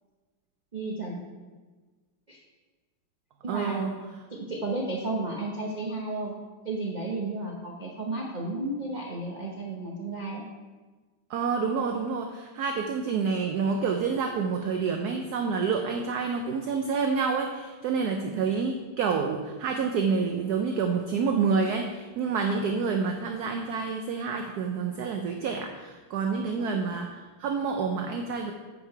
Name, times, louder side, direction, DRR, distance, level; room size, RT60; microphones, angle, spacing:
voice 1, 0.7-1.2 2.3-2.4 3.4-4.0 4.3-6.3 6.6-10.4 18.2-18.4 26.5-26.9, right 2 dB, 45° right, -2 dB, 0.5 m, -33 dB
voice 2, 3.5-3.9 11.3-28.5, right 5 dB, 70° right, 4 dB, 0.9 m, -28 dB
8.3 x 5.5 x 4.5 m, 1.3 s
omnidirectional pair, 2.2 m